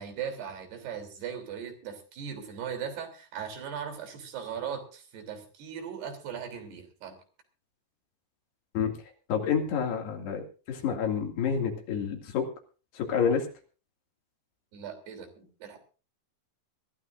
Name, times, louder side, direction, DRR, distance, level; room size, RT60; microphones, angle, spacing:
voice 1, 0.0-7.2 14.7-15.8, right 7 dB, 60° right, 4 dB, 5.3 m, -38 dB
voice 2, 9.3-12.5 12.9-13.5, left 7 dB, 65° left, 2 dB, 4.3 m, -28 dB
23.5 x 15.0 x 2.6 m, 0.37 s
omnidirectional pair, 5.3 m